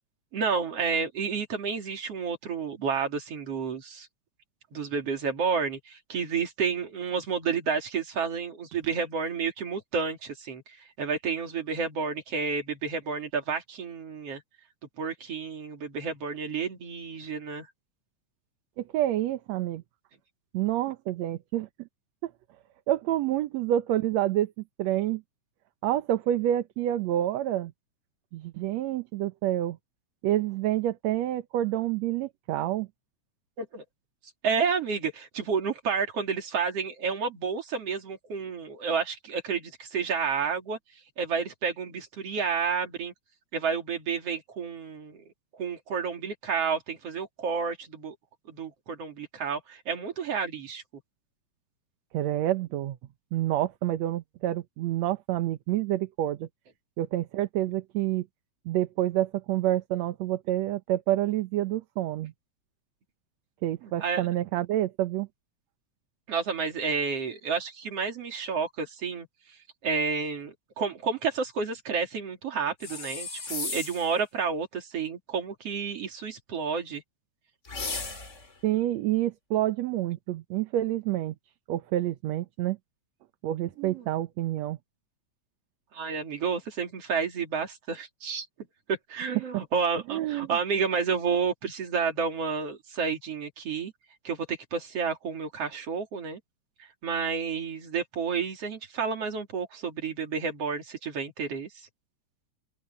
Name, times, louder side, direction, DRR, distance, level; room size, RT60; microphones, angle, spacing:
voice 1, 0.3-4.1 4.7-10.6 11.0-14.4 15.0-17.7 33.6-33.8 34.4-40.8 41.2-43.1 43.5-45.2 45.5-48.2 48.5-50.8 63.8-64.2 66.3-69.3 69.8-77.0 83.8-84.1 85.9-88.5 88.9-93.9 94.2-96.4 96.8-101.7, right 5 dB, 55° right, 3.7 m, -30 dB
voice 2, 18.8-19.8 20.5-21.9 22.2-22.3 22.9-24.5 24.8-25.2 25.8-27.7 28.3-29.8 30.2-32.9 52.1-53.0 53.3-56.5 57.0-58.3 58.7-62.3 63.6-65.3 78.6-81.3 81.7-82.8 83.4-84.8 90.1-90.6, right 13 dB, 70° right, 2.1 m, -28 dB
sound 1, 72.8-74.1 77.6-78.5, left 4 dB, 25° left, 2.6 m, -35 dB
open air
omnidirectional pair, 3.3 m